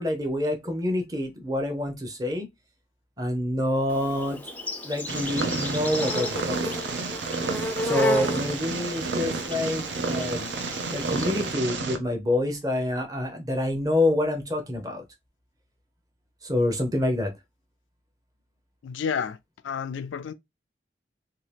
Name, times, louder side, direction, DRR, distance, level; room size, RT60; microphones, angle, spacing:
voice 1, 0.0-2.5 3.2-4.4 4.8-6.7 7.8-10.5 10.9-15.0 16.4-17.3, left 1 dB, 20° right, 0.7 m, -27 dB
Insect, 3.9-11.5, left 1 dB, 10° left, 0.4 m, -33 dB
Purr, 5.1-12.0, right 4 dB, 75° right, 0.6 m, -30 dB
voice 2, 18.8-19.4 19.6-20.3, left 6 dB, 85° left, 0.3 m, -30 dB
2.8 x 2.7 x 3.2 m
head